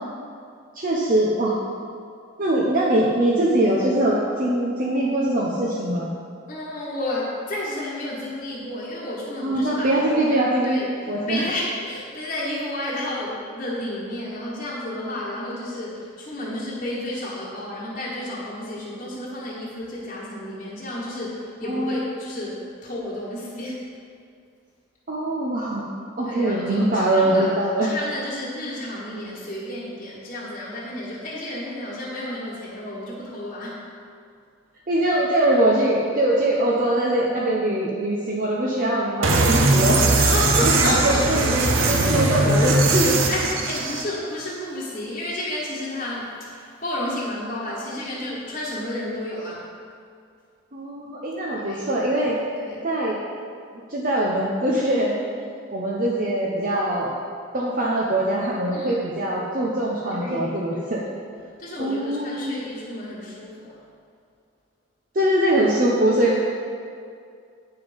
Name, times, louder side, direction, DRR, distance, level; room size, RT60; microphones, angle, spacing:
voice 1, 0.7-1.5 2.4-6.1 9.4-10.8 11.1-11.5 21.7-21.9 25.1-25.9 26.2-27.9 34.9-40.0 40.6-43.2 50.7-52.4 52.8-53.2 53.9-55.2 55.7-57.1 57.5-61.0 61.8-62.6 65.1-66.4, right 1 dB, 45° right, -4 dB, 0.8 m, -22 dB
voice 2, 6.5-10.2 10.6-23.8 26.2-33.8 40.2-49.7 51.6-51.8 52.6-52.9 58.7-59.0 60.1-61.3 61.6-63.8, left 1 dB, 35° left, -9 dB, 1.3 m, -32 dB
sound 1, 39.2-44.0, right 2 dB, 75° right, 0.8 m, -20 dB
9.0 x 5.7 x 5.2 m, 2.3 s
head